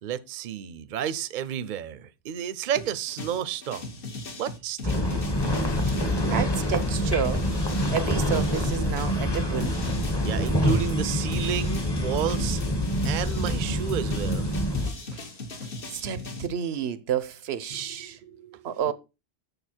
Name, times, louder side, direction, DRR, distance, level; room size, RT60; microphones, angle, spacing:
voice 1, 0.0-3.9 4.4-5.2 10.2-12.6 13.0-14.5 18.0-18.9, right 9 dB, 55° right, 0.7 m, -32 dB
sound 1, 2.7-9.2 9.6-16.5, left 3 dB, 60° left, 1.4 m, -39 dB
sound 2, 4.8-14.9, equal, 25° left, 1.1 m, -26 dB
voice 2, 6.3-7.5 7.9-9.8 15.9-18.2 18.6-18.9, right 8 dB, 85° right, 1.0 m, -30 dB
6.9 x 6.7 x 4.3 m
omnidirectional pair, 1.1 m